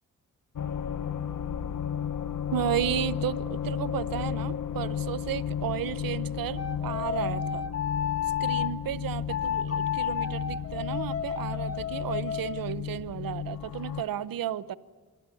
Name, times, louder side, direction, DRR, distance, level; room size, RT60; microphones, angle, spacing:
sound 1, 0.6-14.0, left 8 dB, 70° left, 1.2 m, -33 dB
voice 1, 2.5-7.7 8.4-14.8, right 11 dB, 90° right, 0.9 m, -33 dB
sound 2, 6.6-8.7 9.3-12.6, left 8 dB, 45° left, 1.7 m, -32 dB
27.5 x 20.5 x 9.9 m
cardioid pair, 75°, 33 cm